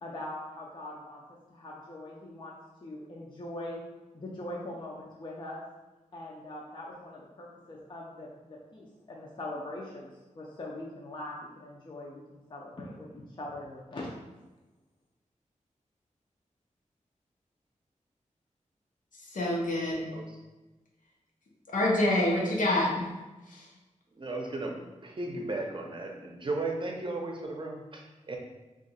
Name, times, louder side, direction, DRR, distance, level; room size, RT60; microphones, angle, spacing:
voice 1, 0.0-1.2 1.5-2.5 2.8-3.8 4.1-5.6 6.1-14.1, left 1 dB, 40° left, -4 dB, 0.5 m, -42 dB
voice 2, 19.3-20.0 21.7-23.1 23.5-23.6, left 1 dB, 85° left, -3 dB, 0.8 m, -26 dB
voice 3, 20.0-20.4 24.1-24.7 25.0-28.4, right 2 dB, 40° right, 1 dB, 0.6 m, -35 dB
2.7 x 2.4 x 4.1 m, 1.1 s
wide cardioid pair, 90°, 13 cm